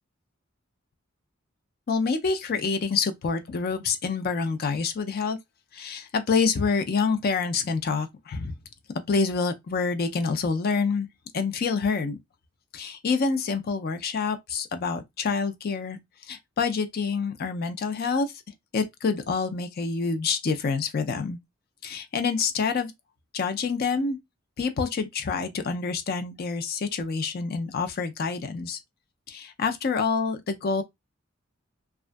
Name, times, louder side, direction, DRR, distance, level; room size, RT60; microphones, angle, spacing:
voice 1, 1.9-5.4 5.7-8.6 9.1-11.1 11.3-12.2 12.7-16.0 16.3-18.3 18.7-21.4 21.8-22.9 23.3-24.2 24.6-28.8 29.3-30.8, left 5 dB, 50° left, 0.4 m, -27 dB
2.3 x 2.2 x 2.5 m
head